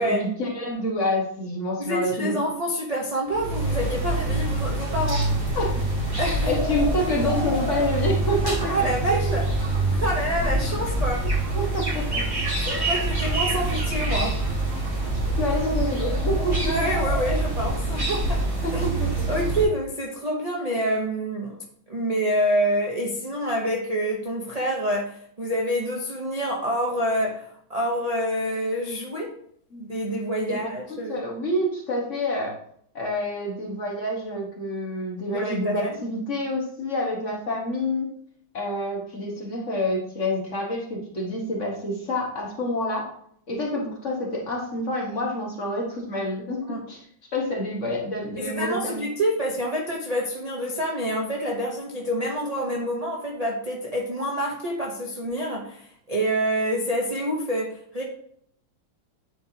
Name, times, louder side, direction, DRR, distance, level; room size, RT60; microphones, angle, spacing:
voice 1, 0.0-2.4 5.5-5.7 6.4-9.4 11.5-12.2 12.7-12.8 15.1-16.9 18.6-19.1 29.7-29.9 30.5-32.6 32.9-38.1 38.5-43.1 43.5-47.0 47.3-49.1, left 1 dB, 40° left, -2 dB, 1.5 m, -28 dB
voice 2, 1.8-5.3 6.2-6.5 8.7-9.4 9.9-11.2 12.9-14.3 16.7-18.4 18.7-18.8 19.3-21.6 21.9-29.3 29.8-31.2 35.3-36.0 46.7-46.8 48.4-58.0, equal, 55° right, -2 dB, 0.4 m, -27 dB
sound 1, 3.3-19.6, right 2 dB, 10° right, 2.0 m, -25 dB
9.1 x 4.5 x 2.8 m, 0.65 s
omnidirectional pair, 2.2 m